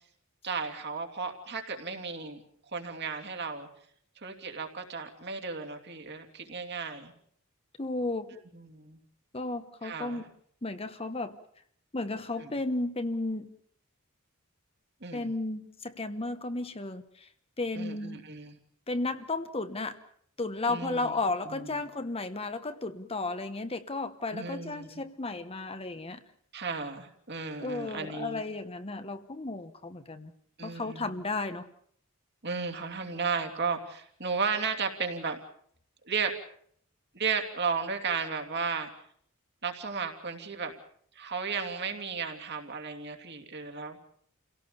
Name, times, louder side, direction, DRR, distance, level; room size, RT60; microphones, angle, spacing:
voice 1, 0.4-2.4 2.7-3.7 4.2-7.1 8.5-9.0 9.8-10.2 12.4-12.5 15.0-15.3 17.7-18.6 20.7-21.1 21.5-21.8 24.3-24.9 26.5-28.4 30.6-31.1 32.4-35.4 36.0-36.3 37.1-38.9 39.6-40.7 41.1-44.0, right 5 dB, 55° right, 4 dB, 2.8 m, -34 dB
voice 2, 7.8-8.4 9.3-10.3 10.6-11.4 11.9-13.5 15.1-17.3 17.6-18.2 18.9-20.0 20.4-26.2 27.6-30.3 30.6-31.7, left 2 dB, 25° left, 10 dB, 1.1 m, -34 dB
28.5 x 17.5 x 6.9 m, 0.64 s
head